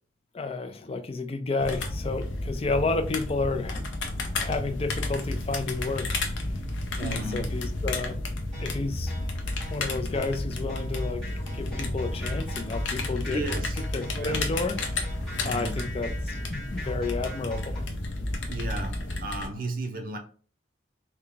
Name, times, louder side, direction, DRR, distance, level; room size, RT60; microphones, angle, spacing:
voice 1, 0.3-3.8 4.4-6.2 6.9-8.2 8.6-9.1 9.7-11.3 11.5-13.4 13.9-14.8 15.4-17.7, left 3 dB, 30° left, 0.4 m, -31 dB
sound 1, 1.6-19.5, left 2 dB, 80° left, 0.6 m, -32 dB
voice 2, 7.0-7.6 13.3-13.8 14.2-14.4 15.4-16.0 18.5-20.2, right 2 dB, 50° right, 0.6 m, -34 dB
sound 2, 8.5-17.8, equal, 5° left, 1.5 m, -45 dB
3.4 x 2.2 x 3.8 m
head